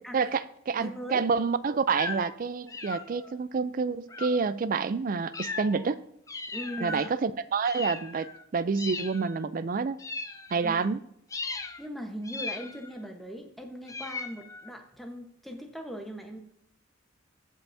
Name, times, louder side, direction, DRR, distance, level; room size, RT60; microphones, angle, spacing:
voice 1, 0.1-6.0 6.8-10.0 10.5-11.0, right 5 dB, 45° right, 14 dB, 0.4 m, -28 dB
voice 2, 0.8-1.3 6.5-7.0 10.6-10.8 11.8-16.4, equal, ahead, 3 dB, 1.1 m, -39 dB
sound 1, 1.9-2.3 2.7-3.4 4.1-4.5 5.3-5.9 6.3-7.1 7.6-8.4 8.7-9.4 10.0-10.9 11.3-11.9 12.2-13.1 13.9-14.8, left 3 dB, 15° left, 0.5 m, -38 dB
16.0 x 5.6 x 2.7 m, 0.73 s
head